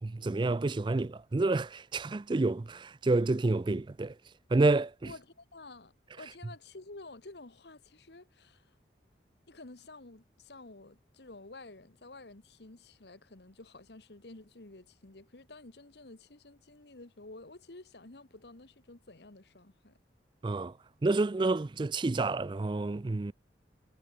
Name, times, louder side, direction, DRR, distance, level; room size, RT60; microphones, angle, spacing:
voice 1, 0.0-4.1 4.5-5.1 20.4-20.7 21.0-23.3, right 2 dB, 25° right, 0.4 m, -29 dB
voice 2, 5.0-8.7 9.5-20.0, left 2 dB, 60° left, 1.4 m, -51 dB
head